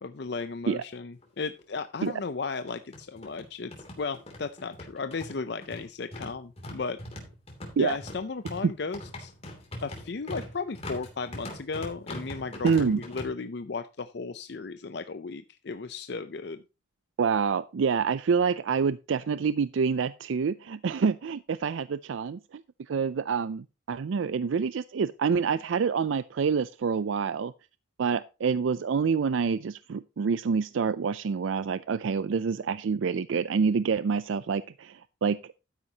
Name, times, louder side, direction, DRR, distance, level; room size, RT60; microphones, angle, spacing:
voice 1, 0.0-3.7 4.0-7.0 7.8-9.3 9.8-16.6, left 4 dB, 55° left, 10 dB, 0.5 m, -35 dB
sound 1, 1.2-1.3 1.6-1.7 2.5-13.3, left 1 dB, 30° left, 2.9 m, -41 dB
voice 2, 12.6-13.0 17.2-22.6 22.9-27.5 28.0-35.6, right 5 dB, 80° right, 15 dB, 0.4 m, -27 dB
12.5 x 9.6 x 2.9 m, 0.29 s
head